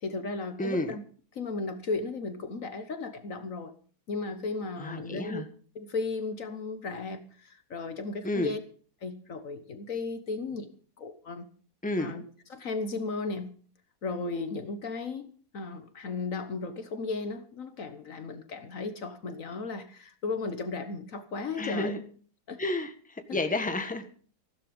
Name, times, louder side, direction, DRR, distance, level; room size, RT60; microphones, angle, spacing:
voice 1, 0.0-1.0 1.3-3.7 4.1-5.4 5.7-8.6 9.0-10.7 11.0-11.5 12.0-12.2 12.5-13.5 14.0-21.9 22.5-22.6 23.3-23.4, left 3 dB, 55° left, 1.5 m, -35 dB
voice 2, 0.6-1.0 4.8-5.5 8.2-8.5 11.8-12.1 21.6-22.0 22.6-24.2, left 2 dB, 5° left, 1.4 m, -31 dB
15.5 x 13.0 x 5.3 m
omnidirectional pair, 1.7 m